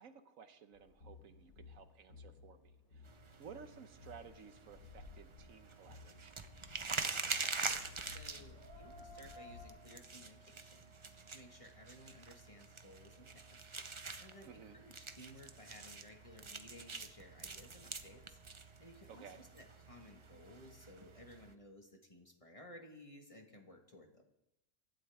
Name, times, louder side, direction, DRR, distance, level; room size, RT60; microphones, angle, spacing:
voice 1, 0.0-6.3 14.4-14.8 19.1-19.4, right 6 dB, 70° right, 9 dB, 1.2 m, -56 dB
sound 1, 0.7-9.7, left 3 dB, 65° left, 3.9 m, -56 dB
sound 2, 3.1-21.5, right 4 dB, 30° right, 0.6 m, -46 dB
voice 2, 7.4-18.4 18.8-24.2, left 1 dB, 25° left, 2 dB, 1.7 m, -58 dB
24.0 x 12.0 x 3.6 m, 0.85 s
omnidirectional pair, 1.5 m